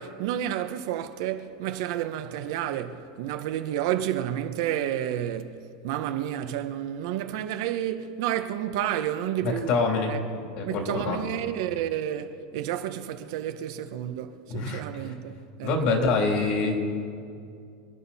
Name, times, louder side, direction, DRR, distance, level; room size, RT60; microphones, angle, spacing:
voice 1, 0.0-9.8 10.1-10.2 10.6-15.7, right 11 dB, 60° right, 1.0 m, -30 dB
voice 2, 9.4-10.1 10.6-11.2 14.5-14.8 15.6-16.8, left 3 dB, 45° left, 3.1 m, -25 dB
27.0 x 10.0 x 4.2 m
supercardioid pair, 155°, 3 cm